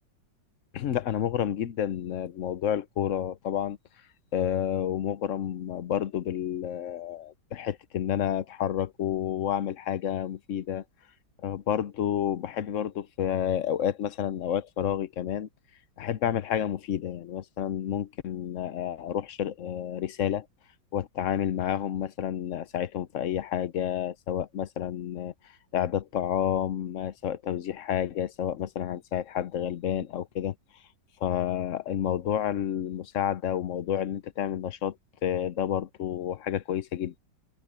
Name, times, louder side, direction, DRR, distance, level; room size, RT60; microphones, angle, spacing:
voice 1, 0.7-3.8 4.3-10.8 11.4-15.5 16.0-20.5 20.9-25.3 25.7-30.5 31.2-35.0 35.2-37.2, left 10 dB, 60° left, 0.9 m, -30 dB
omnidirectional pair, 1.9 m